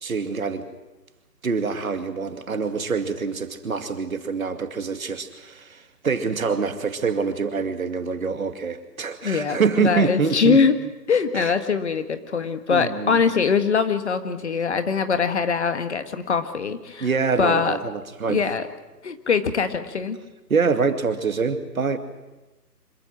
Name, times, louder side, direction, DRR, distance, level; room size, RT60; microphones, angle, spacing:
voice 1, 0.0-0.6 1.4-10.6 11.3-11.5 12.7-13.2 17.0-18.4 20.5-22.0, right 5 dB, 55° right, 8 dB, 2.4 m, -25 dB
voice 2, 9.2-10.8 11.1-17.1 17.4-17.8 18.3-18.7 19.0-20.2, left 5 dB, 45° left, 9 dB, 1.8 m, -22 dB
26.0 x 15.0 x 9.4 m, 1.1 s
figure-of-eight pair, 155°, 48 cm